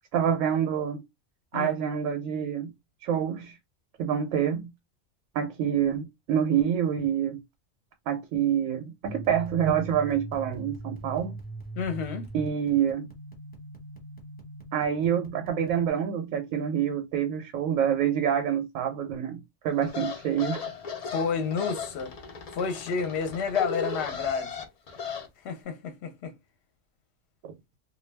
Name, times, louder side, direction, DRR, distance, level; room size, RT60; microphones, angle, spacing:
voice 1, 0.1-1.0 1.5-2.7 3.0-3.5 4.0-4.7 5.3-7.4 8.1-11.4 12.3-13.1 14.7-20.6, right 9 dB, 85° right, 1.0 m, -27 dB
sound 1, 9.0-15.9, right 2 dB, 10° left, 0.9 m, -41 dB
voice 2, 11.8-12.3 21.1-22.1 22.5-24.6 25.4-26.3, left 6 dB, 65° left, 0.8 m, -30 dB
sound 2, 19.8-25.3, left 5 dB, 80° left, 0.3 m, -36 dB
2.2 x 2.2 x 3.2 m
omnidirectional pair, 1.4 m